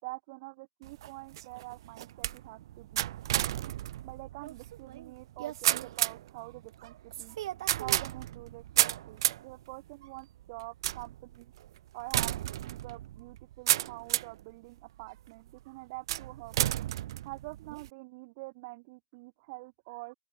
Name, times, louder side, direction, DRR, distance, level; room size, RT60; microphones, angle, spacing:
voice 1, 0.0-3.1 4.0-7.4 7.8-11.5 11.9-12.3 12.6-16.7 17.2-20.1, right 25 dB, 40° right, 6.4 m, -46 dB
sound 1, 0.8-14.4 15.0-15.5 16.1-17.9, right 13 dB, 60° right, 0.9 m, -33 dB
open air
hypercardioid pair, 150°, 3 cm